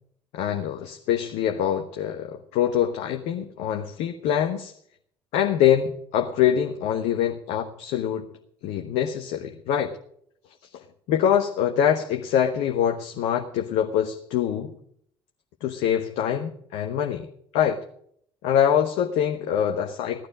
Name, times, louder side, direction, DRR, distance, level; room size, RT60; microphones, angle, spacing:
voice 1, 0.3-4.7 5.3-8.3 8.6-10.0 10.7-14.8 15.6-17.3 17.5-17.8 18.4-20.3, left 9 dB, 60° left, 5 dB, 1.2 m, -24 dB
17.0 x 12.0 x 5.0 m, 0.64 s
figure-of-eight pair, 50°, 14 cm